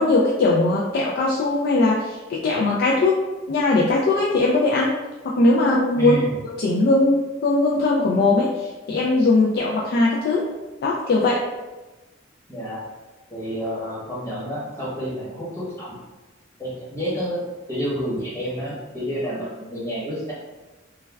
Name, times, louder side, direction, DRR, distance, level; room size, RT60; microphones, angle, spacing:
voice 1, 0.0-5.0 5.2-6.2 6.4-10.5 10.8-11.4, left 2 dB, 50° left, -4 dB, 0.3 m, -20 dB
voice 2, 5.9-6.4 12.5-12.9 13.3-15.9 16.6-20.3, equal, 15° left, -7 dB, 0.9 m, -29 dB
2.2 x 2.2 x 3.2 m, 1.2 s
head